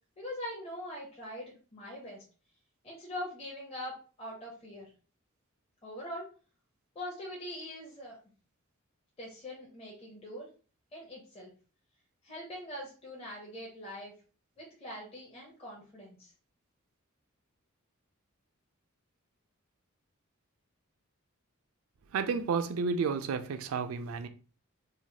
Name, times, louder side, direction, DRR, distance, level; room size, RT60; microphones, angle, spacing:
voice 1, 0.2-2.2 2.8-4.9 5.8-6.3 6.9-8.2 9.2-10.5 10.9-11.5 12.2-14.1 14.6-16.3, left 1 dB, 30° left, 0.7 m, -42 dB
voice 2, 22.1-24.3, right 5 dB, 75° right, 0.3 m, -31 dB
3.1 x 2.2 x 2.7 m
head